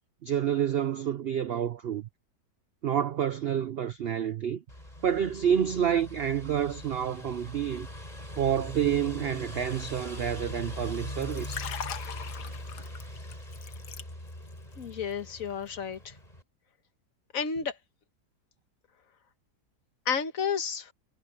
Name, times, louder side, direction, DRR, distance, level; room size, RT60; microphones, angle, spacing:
voice 1, 0.2-2.1 2.8-4.6 5.0-7.9 8.4-11.7, right 9 dB, 70° right, 0.5 m, -28 dB
sound 1, 4.7-16.4, left 1 dB, 25° left, 6.9 m, -41 dB
Liquid, 11.2-14.5 14.8-15.1, left 9 dB, 85° left, 1.6 m, -40 dB
voice 2, 14.8-16.1 17.3-17.7 20.0-20.9, left 6 dB, 60° left, 1.5 m, -31 dB
omnidirectional pair, 1.7 m